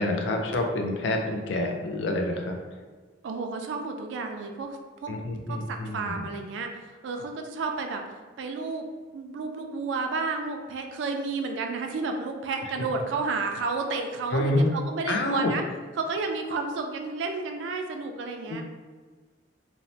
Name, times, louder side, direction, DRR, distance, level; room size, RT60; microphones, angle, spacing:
voice 1, 0.0-2.6 5.1-6.2 14.3-14.7 15.1-15.5 18.5-18.6, left 1 dB, 80° left, 3 dB, 0.4 m, -27 dB
voice 2, 3.2-5.1 5.5-8.8 9.1-15.6 16.0-18.6, right 4 dB, 85° right, 4 dB, 0.3 m, -31 dB
3.0 x 2.0 x 2.6 m, 1.4 s
head